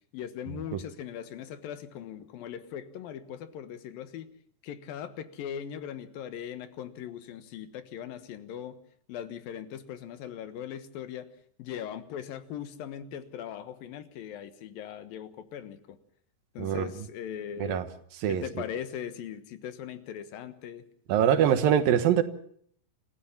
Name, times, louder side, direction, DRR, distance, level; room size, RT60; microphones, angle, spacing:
voice 1, 0.1-4.3 4.6-8.8 9.1-11.3 11.6-16.0 16.5-17.8 18.3-20.8, left 9 dB, 90° left, 3.1 m, -40 dB
voice 2, 21.1-22.2, right 9 dB, 85° right, 3.0 m, -23 dB
27.5 x 15.0 x 7.2 m
omnidirectional pair, 4.0 m